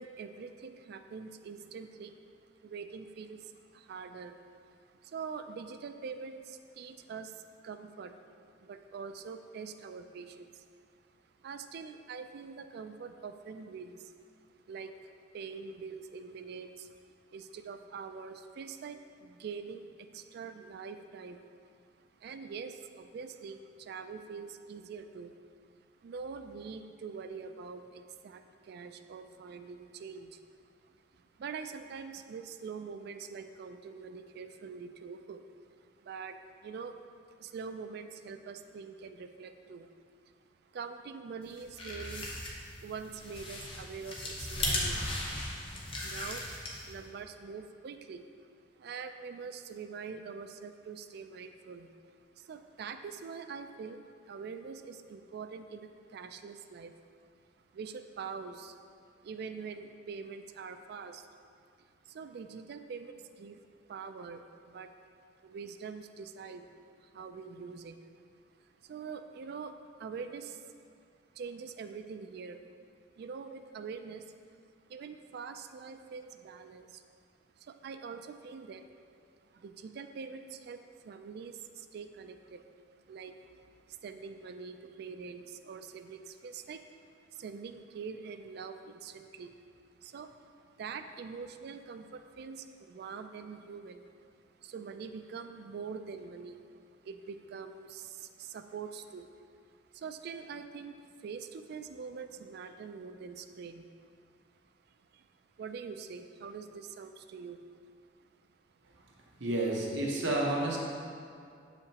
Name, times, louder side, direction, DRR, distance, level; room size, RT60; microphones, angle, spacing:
voice 1, 0.0-2.2 2.6-10.7 11.1-14.3 14.7-21.5 22.0-25.3 26.0-37.1 37.4-39.9 40.2-40.3 40.7-42.4 42.8-46.5 46.8-48.3 48.7-51.9 52.4-57.3 57.7-58.8 59.1-61.3 62.0-63.6 63.9-64.9 65.4-66.7 67.0-68.1 68.6-70.6 71.3-72.6 73.2-74.4 74.9-77.0 77.6-79.1 79.5-89.5 90.0-99.4 99.7-104.2 104.9-105.3 105.6-107.8 108.2-108.6 109.3-109.4, right 5 dB, 60° right, 8 dB, 0.3 m, -45 dB
sound 1, 41.5-47.0, left 1 dB, 30° left, 0.8 m, -37 dB
voice 2, 109.4-110.8, right 2 dB, 75° right, -2 dB, 0.9 m, -30 dB
7.1 x 5.0 x 2.9 m, 2.3 s
head